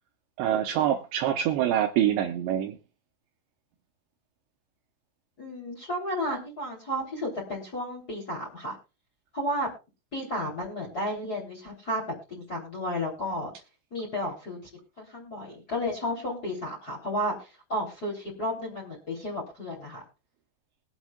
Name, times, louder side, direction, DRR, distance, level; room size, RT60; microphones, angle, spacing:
voice 1, 0.4-2.8, right 11 dB, 80° right, 2.7 m, -25 dB
voice 2, 5.4-8.7 9.3-9.7 10.1-12.0 12.3-13.5 13.9-14.6 15.0-20.0, equal, 25° left, 2.7 m, -32 dB
22.0 x 8.1 x 2.3 m
omnidirectional pair, 5.7 m